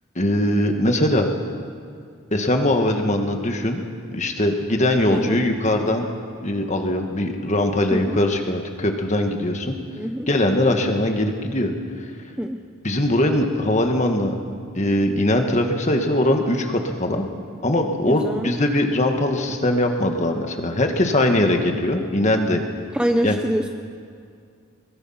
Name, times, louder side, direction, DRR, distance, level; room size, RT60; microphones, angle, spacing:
voice 1, 0.1-1.3 2.3-3.8 4.1-6.0 6.4-9.8 10.3-11.7 12.8-14.3 14.7-17.2 17.6-22.6 23.2-23.4, left 1 dB, 35° left, 4 dB, 1.7 m, -21 dB
voice 2, 10.0-10.3 12.4-12.6 18.1-18.5 22.9-23.7, equal, 5° right, 5 dB, 0.6 m, -24 dB
22.0 x 21.5 x 5.8 m, 2.3 s
head